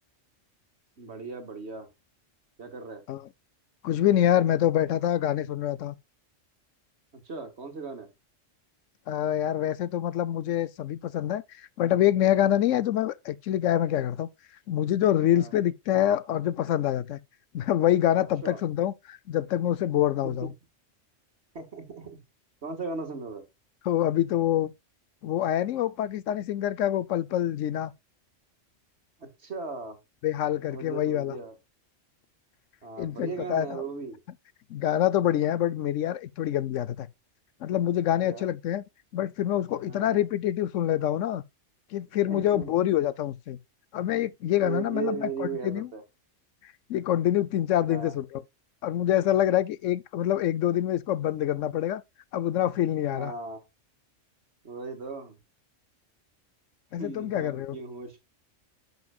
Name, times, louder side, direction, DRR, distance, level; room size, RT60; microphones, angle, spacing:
voice 1, 1.0-1.9 2.6-3.0 7.1-8.1 15.3-15.5 18.4-18.6 20.2-20.5 21.5-22.2 22.6-23.4 29.2-30.0 30.7-31.6 32.8-34.2 38.2-38.5 39.8-40.3 42.2-42.8 44.6-46.0 47.8-48.1 53.1-53.6 54.6-55.4 57.0-58.2, right 4 dB, 60° right, 2.1 m, -37 dB
voice 2, 3.8-5.9 9.1-14.3 14.7-17.2 17.5-20.5 23.8-24.7 25.2-27.9 30.2-31.4 33.0-33.8 34.7-37.1 37.6-38.8 39.1-41.4 41.9-43.6 43.9-45.9 46.6-48.4 48.8-52.0 52.3-53.3 56.9-57.8, left 11 dB, 80° left, 1.0 m, -26 dB
10.0 x 6.3 x 2.3 m
omnidirectional pair, 1.3 m